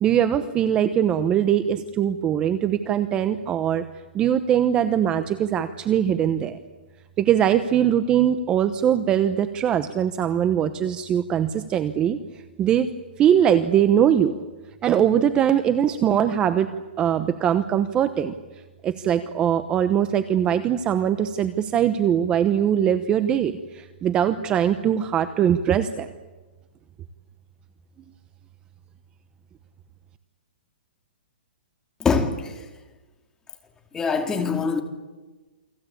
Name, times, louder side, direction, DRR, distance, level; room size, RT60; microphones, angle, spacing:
voice 1, 0.0-3.8 4.1-6.6 7.2-12.2 12.6-12.9 13.2-14.3 14.8-16.7 17.0-18.3 18.8-26.1, right 9 dB, 15° right, 0.9 m, -21 dB
voice 2, 32.0-32.7 33.9-34.8, left 5 dB, 10° left, 2.4 m, -23 dB
29.0 x 23.5 x 8.6 m
hypercardioid pair, 160°, 5 cm